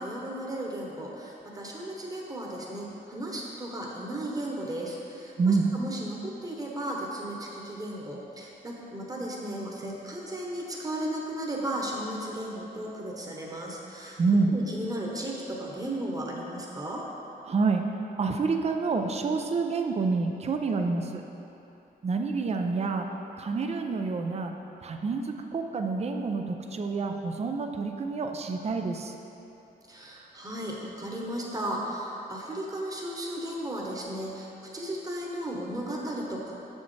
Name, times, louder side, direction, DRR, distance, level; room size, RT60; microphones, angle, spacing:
voice 1, 0.0-14.2 14.5-17.0 29.9-36.5, right 1 dB, 20° right, -3 dB, 1.1 m, -35 dB
voice 2, 5.4-5.7 14.2-14.5 17.5-17.9 18.2-21.2 22.0-23.1 23.4-24.5 24.8-25.2 25.5-29.1, right 4 dB, 35° right, 4 dB, 0.5 m, -27 dB
6.8 x 6.3 x 3.3 m, 2.9 s
cardioid pair, 80°, 18 cm